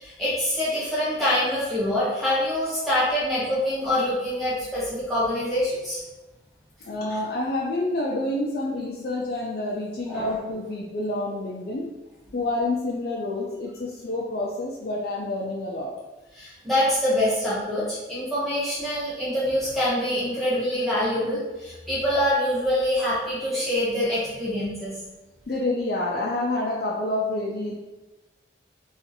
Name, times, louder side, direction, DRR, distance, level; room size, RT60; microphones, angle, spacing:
voice 1, 0.0-6.0 10.1-10.3 16.4-24.9, left 1 dB, ahead, -11 dB, 0.8 m, -25 dB
voice 2, 6.8-11.8 12.3-15.9 25.5-27.7, left 2 dB, 55° left, -4 dB, 0.4 m, -28 dB
2.6 x 2.4 x 4.0 m, 1.1 s
head